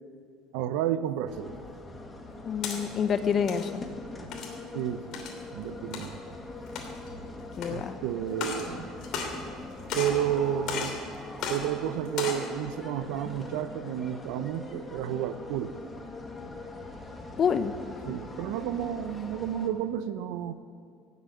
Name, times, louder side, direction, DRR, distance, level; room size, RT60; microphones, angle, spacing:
voice 1, 0.5-1.5 4.7-5.2 5.5-6.1 7.7-8.9 9.9-11.0 11.5-15.7 18.0-20.5, right 10 dB, 80° right, 12 dB, 0.8 m, -31 dB
sound 1, 1.3-19.7, left 2 dB, 15° left, 1.7 m, -42 dB
sound 2, 2.3-2.8 3.3-3.7 4.3-4.6 5.1-5.4 5.9-6.1 6.6-7.1 7.6-7.7 8.3-8.7 9.0-9.6 9.9-10.2 10.7-11.0 11.4-11.6 12.1-12.5, left 6 dB, 55° left, 2.9 m, -34 dB
voice 2, 2.4-3.8 7.6-7.9 17.4-17.7, left 7 dB, 35° left, 11 dB, 0.8 m, -27 dB
17.5 x 8.3 x 9.3 m, 2.4 s
cardioid pair, 150°, 0 cm